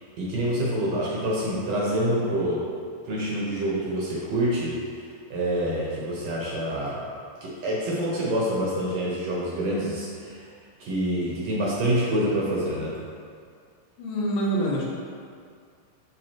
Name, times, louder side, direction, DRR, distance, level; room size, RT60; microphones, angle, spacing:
voice 1, 0.2-2.7 3.1-4.7 5.3-7.0 7.4-10.4 10.8-13.0, right 1 dB, 60° right, -5 dB, 2.1 m, -26 dB
voice 2, 14.0-14.9, right 1 dB, 85° left, -4 dB, 2.8 m, -25 dB
7.6 x 6.3 x 2.9 m, 2.2 s
omnidirectional pair, 3.8 m